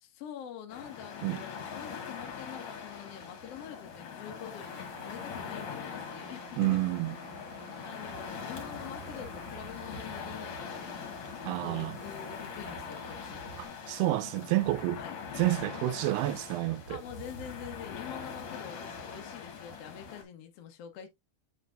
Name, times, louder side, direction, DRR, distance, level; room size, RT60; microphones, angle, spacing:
voice 1, 0.0-6.8 7.3-11.2 11.6-13.4 15.0-15.1 16.9-21.1, left 9 dB, 80° left, 1.3 m, -46 dB
sound 1, 0.7-20.2, left 6 dB, 55° left, 2.6 m, -42 dB
sound 2, 4.7-13.7, right 13 dB, 75° right, 2.2 m, -53 dB
voice 2, 6.6-7.2 11.4-12.0 13.6-15.0 15.4-17.0, right 16 dB, 90° right, 2.7 m, -29 dB
7.1 x 5.8 x 2.5 m
omnidirectional pair, 4.6 m